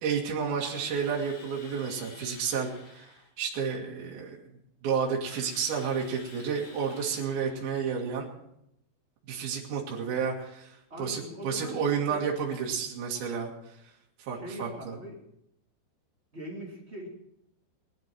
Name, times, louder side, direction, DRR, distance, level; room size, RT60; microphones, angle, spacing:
voice 1, 0.0-4.4 4.8-8.3 9.3-13.5 14.2-14.7, right 6 dB, 60° right, -2 dB, 3.7 m, -31 dB
Drill, 0.6-3.3 5.3-7.8, left 4 dB, 50° left, 3.1 m, -51 dB
voice 2, 10.9-12.3 14.3-15.2 16.3-17.1, equal, 20° right, -2 dB, 2.1 m, -41 dB
19.5 x 11.5 x 4.5 m, 0.79 s
omnidirectional pair, 5.1 m